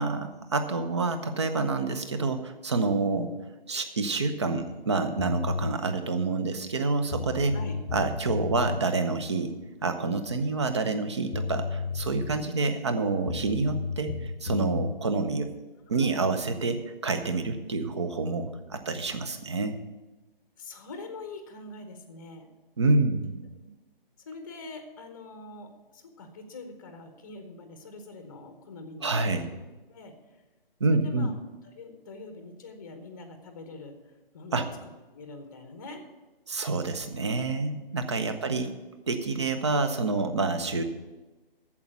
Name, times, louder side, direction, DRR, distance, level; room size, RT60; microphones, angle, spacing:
voice 1, 0.0-3.3 3.7-7.6 7.9-9.5 9.8-15.5 15.9-19.8 22.8-23.3 29.0-29.5 30.8-31.3 34.5-34.7 36.5-38.7 39.1-40.8, right 3 dB, 30° right, 8 dB, 0.7 m, -28 dB
sound 1, 5.2-5.8 6.8-6.9 7.1-8.8 11.0-11.1 11.3-12.5 13.3-15.0, left 4 dB, 85° left, 0.8 m, -32 dB
voice 2, 15.9-16.4 20.6-22.5 23.6-23.7 24.3-29.3 29.9-30.1 30.9-31.3 31.6-33.9 34.3-34.6 35.1-36.0, left 2 dB, 20° left, 7 dB, 0.9 m, -44 dB
8.5 x 7.3 x 8.0 m, 1.2 s
figure-of-eight pair, 145°, 29 cm